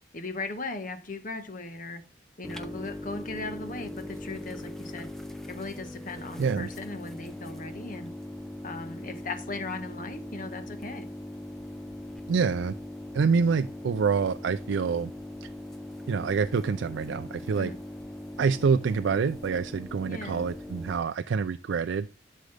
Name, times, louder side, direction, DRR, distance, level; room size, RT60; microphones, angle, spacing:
voice 1, 0.1-2.0 2.4-5.1 5.5-8.1 8.6-11.1 17.6-17.8 20.1-20.4, left 3 dB, 45° left, 1.2 m, -38 dB
sound 1, 2.4-21.0, left 1 dB, ahead, 0.7 m, -40 dB
voice 2, 12.3-12.7 13.1-15.1 15.4-15.5 16.1-17.7 18.4-22.1, right 5 dB, 75° right, 0.4 m, -26 dB
11.5 x 6.4 x 3.4 m
head